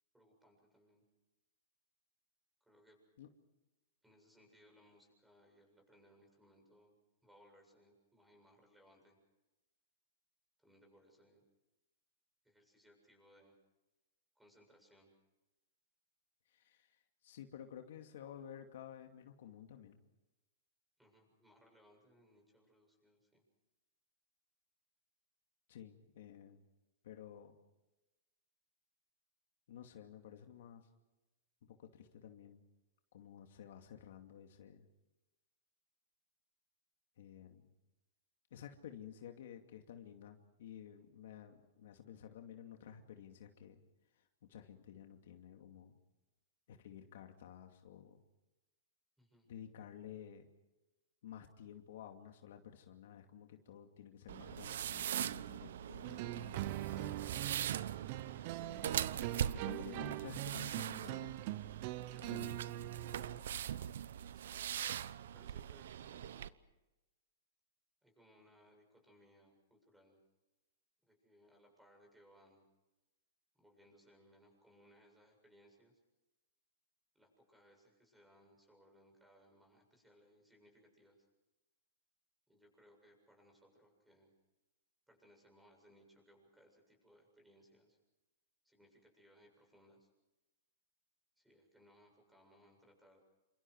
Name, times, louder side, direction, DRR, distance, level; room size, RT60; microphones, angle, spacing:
voice 1, 0.1-1.0 2.6-3.0 4.0-7.0 7.2-9.2 10.6-11.4 12.4-13.6 14.4-15.1 21.0-23.4 49.2-49.5 65.3-66.6 68.0-70.2 71.1-72.6 73.6-76.0 77.1-81.3 82.5-84.3 85.1-88.0 88.6-90.1 91.4-93.2, equal, 5° right, 2 dB, 7.4 m, -67 dB
voice 2, 16.5-17.0 17.2-20.0 25.7-26.6 27.0-27.6 29.7-30.9 31.7-32.6 33.1-34.9 37.2-37.7 38.5-43.8 44.1-44.2 44.5-46.0 46.7-48.2 49.5-50.5 51.2-57.2 58.6-59.0 59.4-61.4 62.2-62.6, left 9 dB, 70° left, 5 dB, 2.5 m, -53 dB
sound 1, 54.3-66.5, right 10 dB, 75° right, 0.9 m, -42 dB
sound 2, 56.0-63.4, right 16 dB, 45° right, 0.9 m, -43 dB
29.0 x 26.5 x 4.8 m, 1.0 s
hypercardioid pair, 145°, 0 cm